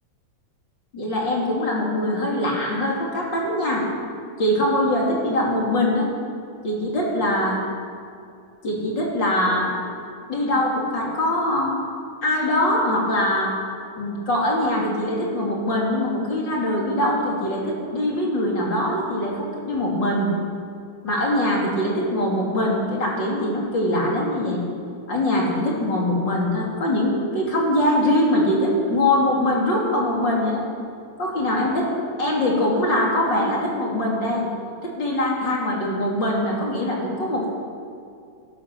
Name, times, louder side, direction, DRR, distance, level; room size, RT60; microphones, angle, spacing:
voice 1, 0.9-3.8 4.4-6.1 6.6-7.6 8.6-9.7 10.3-11.7 12.2-13.5 14.0-20.3 21.0-24.6 25.1-30.6 31.2-31.9 32.2-34.5 34.8-37.5, left 1 dB, 30° left, -3 dB, 3.2 m, -22 dB
17.0 x 12.0 x 6.1 m, 2.4 s
omnidirectional pair, 4.3 m